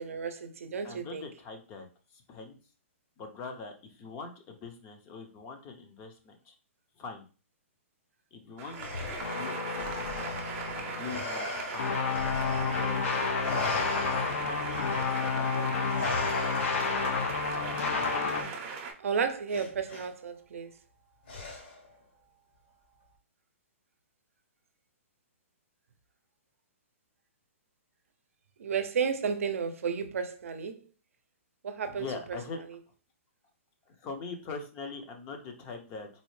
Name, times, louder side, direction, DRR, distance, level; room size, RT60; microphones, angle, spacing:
voice 1, 0.0-1.3 19.0-20.7 28.6-30.8 31.6-32.1, right 6 dB, 80° right, 0.5 m, -32 dB
voice 2, 0.8-2.6 3.2-6.5 7.0-7.2 8.3-10.4 10.7-11.9 12.7-13.7 14.4-16.2 17.5-18.5 31.9-32.6 33.9-36.1, left 4 dB, 25° left, 0.6 m, -43 dB
sound 1, 8.6-18.9, right 5 dB, 30° right, 0.6 m, -39 dB
Respiratory sounds, 8.7-13.1 13.4-17.1 18.3-18.5 19.5-20.1 21.3-21.9, left 2 dB, 55° left, 1.2 m, -39 dB
sound 2, 9.2-11.2 11.8-18.4, left 5 dB, 75° left, 0.8 m, -30 dB
4.0 x 2.0 x 3.1 m
hypercardioid pair, 150°, 7 cm